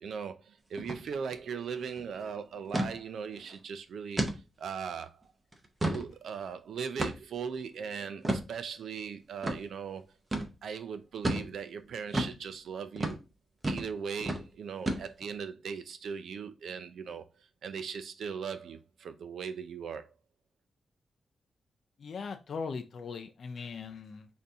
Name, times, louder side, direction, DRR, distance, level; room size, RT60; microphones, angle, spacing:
voice 1, 0.0-5.2 5.8-10.1 10.6-13.2 13.6-20.1, right 6 dB, 75° right, 0.4 m, -39 dB
sound 1, 0.8-1.0 1.3-1.4 1.8-2.0 2.7-2.9 3.4-3.5 4.2-4.4 4.9-5.0 5.5-6.1 7.0-7.4 8.2-8.5 9.4-9.6 10.3-10.5 11.2-11.5 12.1-12.4 13.0-13.2 13.6-13.9 14.2-14.4 14.9-15.3, right 1 dB, 20° right, 0.6 m, -31 dB
voice 2, 22.0-24.3, left 5 dB, 50° left, 0.4 m, -39 dB
4.1 x 2.6 x 3.4 m
wide cardioid pair, 160°, 0 cm